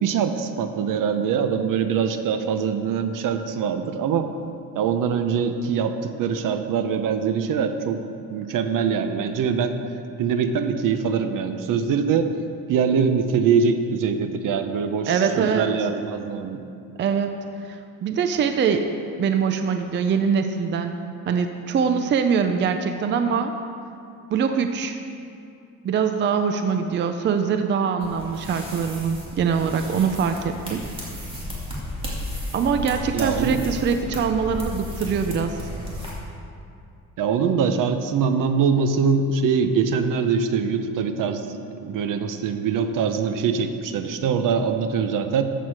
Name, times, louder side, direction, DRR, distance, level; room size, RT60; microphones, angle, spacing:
voice 1, 0.0-4.3 4.7-8.0 8.3-9.8 10.2-12.3 12.7-16.6 33.1-33.6 37.2-41.5 41.8-45.4, right 6 dB, 65° right, 8 dB, 0.9 m, -23 dB
voice 2, 15.1-15.7 17.0-18.9 19.2-20.9 21.3-23.5 24.3-25.0 25.8-30.8 32.5-35.6, right 6 dB, 35° right, 7 dB, 0.5 m, -23 dB
sound 1, 28.0-36.1, left 1 dB, 15° right, 2.5 m, -34 dB
14.0 x 8.2 x 4.7 m, 2.5 s
cardioid pair, 155°, 35 cm